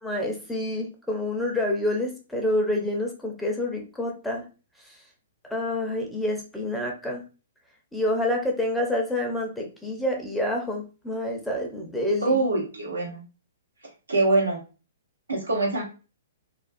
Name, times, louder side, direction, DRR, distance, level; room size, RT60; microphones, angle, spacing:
voice 1, 0.0-4.4 4.9-5.0 5.5-7.2 7.9-12.4, left 1 dB, 5° left, 0 dB, 0.6 m, -28 dB
voice 2, 12.2-13.2 14.1-14.6 15.3-15.8, right 2 dB, 85° right, -1 dB, 0.9 m, -24 dB
2.4 x 2.3 x 2.5 m, 0.33 s
figure-of-eight pair, 120°, 0 cm